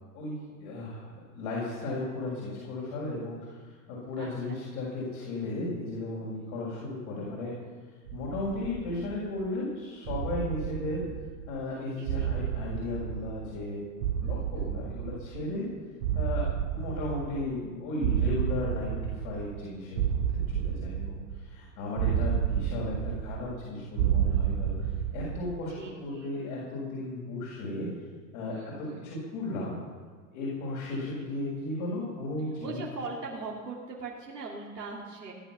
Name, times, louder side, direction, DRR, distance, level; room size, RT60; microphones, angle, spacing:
voice 1, 0.1-7.5 8.1-11.1 11.5-13.8 14.1-15.7 16.1-24.9 25.1-25.7 26.0-27.9 28.3-29.8 30.3-32.8, left 2 dB, 55° left, -5 dB, 6.4 m, -35 dB
voice 2, 4.2-4.6 12.0-12.3 14.2-14.6 25.8-26.3 28.5-29.0 30.9-31.3 32.6-35.3, right 3 dB, 85° right, -5 dB, 3.3 m, -41 dB
sound 1, 8.1-9.4 10.1-11.6 12.1-13.7 14.0-15.6 16.0-17.7 18.0-19.6 20.0-21.6 22.0-23.6 24.0-25.6, right 9 dB, 60° right, 1.2 m, -31 dB
19.0 x 11.0 x 6.1 m, 1.5 s
figure-of-eight pair, 85°, 47 cm